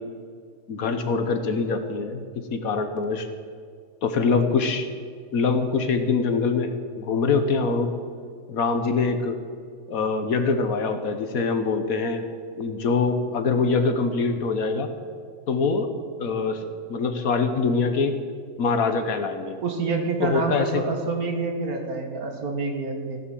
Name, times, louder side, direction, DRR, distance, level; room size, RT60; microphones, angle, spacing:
voice 1, 0.7-2.2 2.5-3.3 4.0-4.9 5.3-7.9 8.5-9.4 9.9-12.3 12.6-14.9 15.5-15.9 16.2-16.6 16.9-18.1 18.6-19.6 20.2-20.8, left 4 dB, 60° left, 8 dB, 1.3 m, -24 dB
voice 2, 19.6-23.2, right 3 dB, 60° right, 3 dB, 2.0 m, -27 dB
15.5 x 7.5 x 7.6 m, 2.1 s
omnidirectional pair, 1.8 m